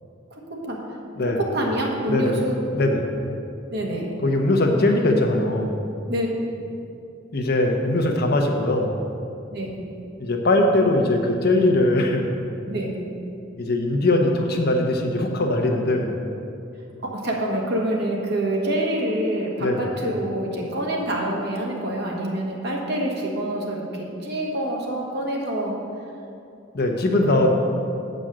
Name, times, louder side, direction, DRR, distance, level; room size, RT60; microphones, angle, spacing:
voice 1, 0.3-0.8 1.2-2.6 3.7-4.1 6.1-6.3 9.5-9.7 12.6-12.9 17.0-25.7 27.2-27.5, right 1 dB, 55° right, -2 dB, 1.5 m, -26 dB
voice 2, 2.1-2.4 2.7-3.1 4.2-5.8 7.3-8.9 10.2-12.3 13.6-16.1 19.6-19.9 26.7-27.5, left 2 dB, 55° left, 2 dB, 0.9 m, -21 dB
7.6 x 5.3 x 7.5 m, 2.7 s
head